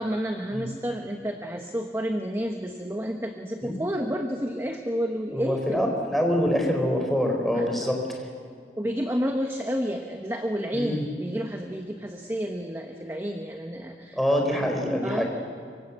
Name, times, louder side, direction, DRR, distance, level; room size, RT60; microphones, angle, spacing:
voice 1, 0.0-5.9 7.5-7.8 8.8-14.2 14.5-14.7 15.0-15.2, equal, 15° right, 3 dB, 1.2 m, -30 dB
voice 2, 5.3-8.0 10.7-11.0 14.1-15.2, equal, ahead, 1 dB, 3.9 m, -25 dB
25.5 x 24.0 x 8.1 m, 2.2 s
head